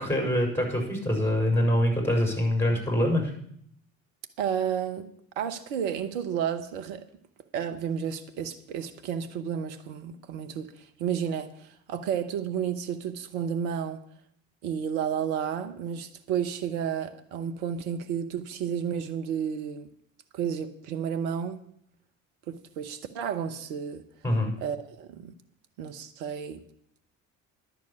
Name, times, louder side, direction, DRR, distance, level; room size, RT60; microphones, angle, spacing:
voice 1, 0.0-3.3 24.2-24.5, left 1 dB, 5° left, 6.3 m, -25 dB
voice 2, 4.4-5.1 5.4-7.1 7.5-14.0 14.6-19.9 20.3-21.6 22.5-24.0 24.6-25.3 25.8-26.6, right 8 dB, 70° right, 1.0 m, -31 dB
10.5 x 7.4 x 8.5 m
hypercardioid pair, 55°, 40 cm